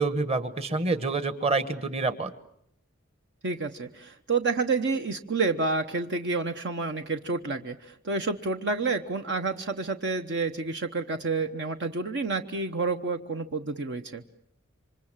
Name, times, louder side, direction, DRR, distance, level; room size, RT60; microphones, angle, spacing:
voice 1, 0.0-2.3, right 3 dB, 30° right, 11 dB, 1.5 m, -27 dB
voice 2, 3.4-14.2, right 3 dB, 55° right, 6 dB, 1.0 m, -29 dB
27.5 x 25.5 x 7.4 m, 0.74 s
head